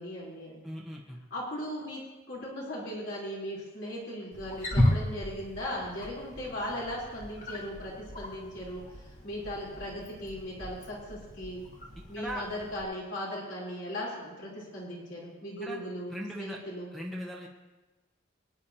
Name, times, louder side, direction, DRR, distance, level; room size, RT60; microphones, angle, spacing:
voice 1, 0.0-0.6 1.3-11.6 12.1-16.9, equal, 65° left, -6 dB, 4.0 m, -38 dB
voice 2, 0.6-1.2 12.1-12.4 15.6-15.8 16.1-16.6 16.9-17.5, right 1 dB, ahead, -1 dB, 1.3 m, -38 dB
Wild animals, 4.3-12.8, left 1 dB, 40° left, 2.0 m, -34 dB
24.0 x 9.6 x 2.9 m, 1.2 s
head